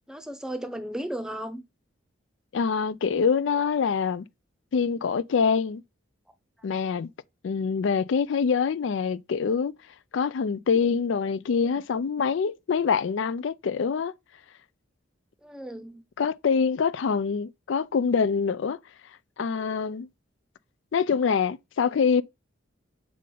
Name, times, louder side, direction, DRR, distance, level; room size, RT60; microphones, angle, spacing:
voice 1, 0.1-1.6 15.4-16.0, right 1 dB, 5° right, 0.7 m, -35 dB
voice 2, 2.5-4.2 4.7-5.8 6.6-7.1 7.4-9.8 10.1-14.1 16.2-18.8 19.4-20.1 20.9-22.2, left 6 dB, 70° left, 0.4 m, -25 dB
6.5 x 5.0 x 3.8 m
head